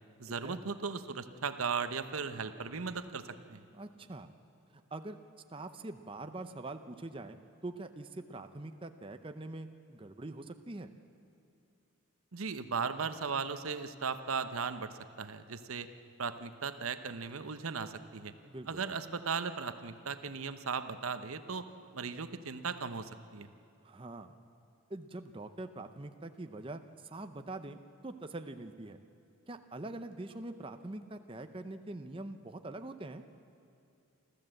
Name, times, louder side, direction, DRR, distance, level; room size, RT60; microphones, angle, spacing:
voice 1, 0.2-3.2 3.5-3.6 12.3-15.9 16.2-18.3 18.7-21.7 21.9-23.5, right 5 dB, 80° right, 10 dB, 0.9 m, -37 dB
voice 2, 3.7-4.3 4.7-5.2 5.5-7.4 7.6-10.9 18.4-18.8 23.8-24.3 24.9-29.0 29.5-33.2, right 2 dB, 25° right, 8 dB, 0.6 m, -44 dB
28.5 x 13.5 x 7.8 m, 2.6 s
head